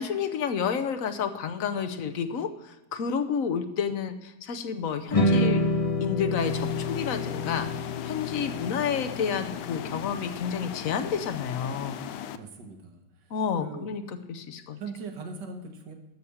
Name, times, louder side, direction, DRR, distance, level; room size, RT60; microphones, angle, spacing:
voice 1, 0.0-5.6 6.0-7.7 8.0-12.0 13.3-14.8, left 7 dB, 60° left, 8 dB, 1.1 m, -30 dB
sound 1, 5.1-11.4, left 2 dB, 30° left, 0.7 m, -29 dB
sound 2, 6.4-12.4, left 9 dB, 80° left, 1.2 m, -38 dB
voice 2, 12.3-13.0 13.6-13.9 14.8-15.9, right 4 dB, 75° right, 5 dB, 2.0 m, -40 dB
13.0 x 4.9 x 7.0 m, 1.1 s
omnidirectional pair, 1.9 m